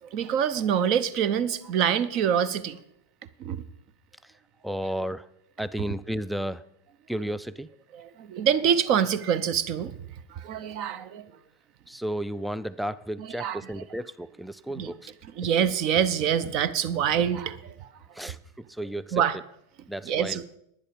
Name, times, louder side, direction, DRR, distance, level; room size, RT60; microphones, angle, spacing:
voice 1, 0.0-2.8 3.4-3.6 7.9-10.0 10.3-11.2 13.2-13.6 14.8-14.9 15.4-17.9 18.2-18.3 19.1-19.4 20.1-20.4, right 8 dB, 40° right, 17 dB, 0.7 m, -25 dB
voice 2, 4.6-5.3 5.6-6.6 7.1-7.7 11.9-15.1 18.1-19.2 19.9-20.4, right 1 dB, ahead, 16 dB, 0.3 m, -33 dB
11.0 x 10.0 x 5.2 m, 0.77 s
figure-of-eight pair, 90°, 0 cm